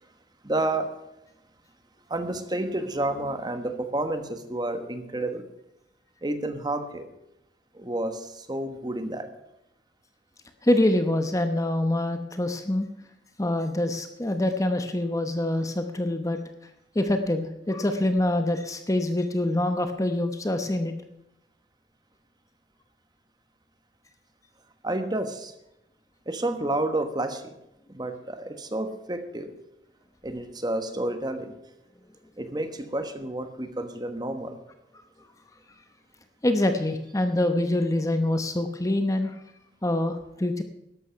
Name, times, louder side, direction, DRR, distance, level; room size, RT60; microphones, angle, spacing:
voice 1, 0.4-1.0 2.1-5.5 6.2-7.1 7.7-9.3 24.8-25.5 26.3-27.5 27.9-29.6 30.2-31.6 32.4-34.6, right 1 dB, 25° right, 8 dB, 1.2 m, -30 dB
voice 2, 10.6-12.9 13.4-16.4 16.9-20.9 36.4-39.4 39.8-40.6, left 1 dB, 20° left, 7 dB, 0.8 m, -25 dB
13.0 x 11.0 x 5.7 m, 0.87 s
head